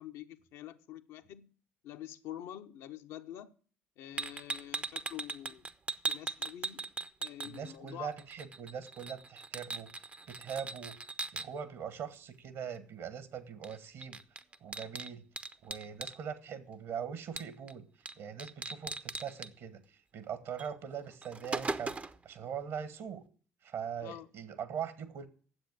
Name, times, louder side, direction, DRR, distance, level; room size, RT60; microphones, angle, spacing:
voice 1, 0.0-1.5 1.8-3.5 4.0-5.7 6.1-6.9 7.2-8.1 24.0-24.3, left 12 dB, 60° left, 0.8 m, -46 dB
sound 1, 4.2-7.9 8.2-11.5 13.6-13.8 14.0-16.2 17.4-17.7 18.1-18.2 18.4-19.5 20.6-20.7 21.1-22.2, right 3 dB, 25° right, 0.7 m, -39 dB
voice 2, 7.4-9.9 10.3-11.0 11.3-14.2 14.6-15.2 15.6-17.8 18.2-19.8 20.1-21.9 22.2-23.2 23.6-25.3, right 7 dB, 55° right, 1.5 m, -41 dB
9.8 x 7.9 x 8.6 m
figure-of-eight pair, 50°, 6 cm